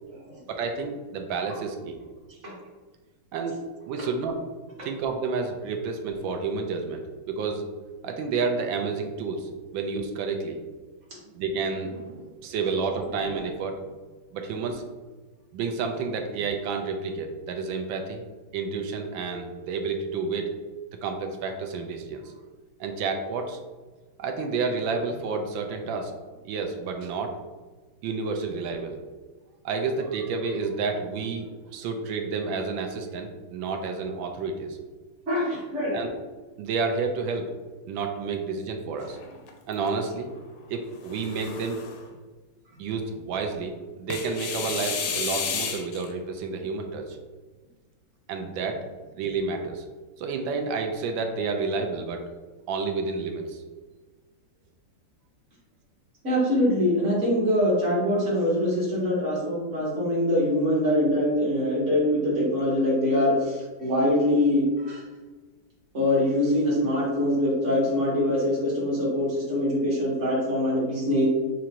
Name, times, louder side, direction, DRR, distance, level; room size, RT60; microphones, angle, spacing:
voice 1, 0.5-2.0 3.3-3.6 3.9-4.4 4.8-7.7 8.0-10.6 11.3-13.8 14.3-14.8 15.5-18.2 18.5-20.5 21.0-22.3 22.8-23.6 24.2-26.1 26.4-27.3 28.0-29.0 29.6-34.8 35.9-36.1 36.6-37.5 37.9-39.2 39.7-40.3 40.7-41.8 42.8-47.2 48.3-48.8 49.2-49.8 50.2-52.2 52.7-53.6, right 4 dB, 75° right, 4 dB, 1.2 m, -30 dB
voice 2, 35.3-36.0 56.2-65.0 65.9-71.3, left 1 dB, 40° right, -6 dB, 1.5 m, -23 dB
sound 1, 39.0-39.9 40.9-42.0 44.1-46.1, left 6 dB, 85° left, 1.4 m, -32 dB
5.9 x 2.5 x 2.8 m, 1.3 s
omnidirectional pair, 2.3 m